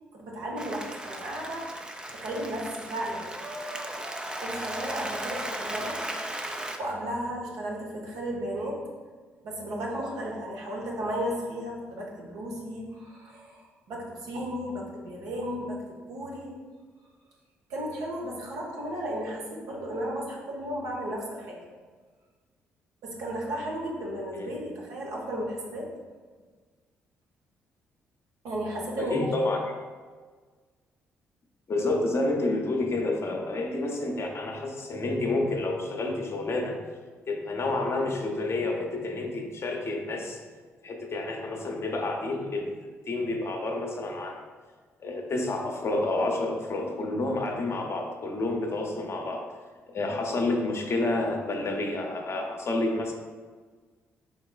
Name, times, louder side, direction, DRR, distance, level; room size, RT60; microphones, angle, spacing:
voice 1, 0.1-1.6 2.1-3.3 3.6-3.8 4.4-6.0 6.8-8.8 9.4-15.8 16.1-16.6 17.7-21.6 23.0-25.9 28.4-29.5, equal, 65° right, -2 dB, 0.9 m, -34 dB
Applause, 0.6-6.8, right 1 dB, 15° right, 0.5 m, -36 dB
voice 2, 29.0-29.6 31.7-36.8 37.3-40.4 40.8-42.7 43.1-44.5 45.0-49.4 49.9-53.1, left 2 dB, 40° left, 2 dB, 0.7 m, -29 dB
4.5 x 3.9 x 2.3 m, 1.5 s
hypercardioid pair, 45°, 7 cm